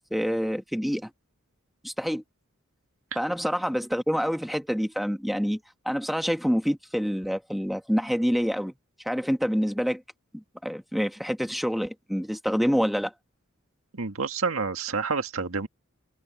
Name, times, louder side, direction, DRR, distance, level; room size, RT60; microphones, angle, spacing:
voice 1, 0.1-1.1 1.8-2.2 3.1-5.6 5.8-8.7 9.0-10.0 10.3-13.1, equal, ahead, 1.5 m, -27 dB
voice 2, 13.9-15.7, right 4 dB, 75° right, 1.9 m, -28 dB
head